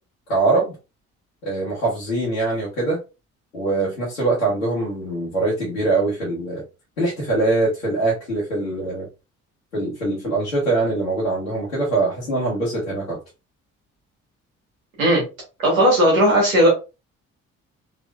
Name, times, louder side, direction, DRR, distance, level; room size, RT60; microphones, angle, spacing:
voice 1, 0.3-0.8 1.4-3.0 3.5-6.6 7.0-9.1 9.7-13.2, right 2 dB, 85° left, -8 dB, 1.0 m, -23 dB
voice 2, 15.6-16.7, equal, 85° right, -3 dB, 1.3 m, -16 dB
3.6 x 2.9 x 2.3 m, 0.28 s
figure-of-eight pair, 40°, 40 cm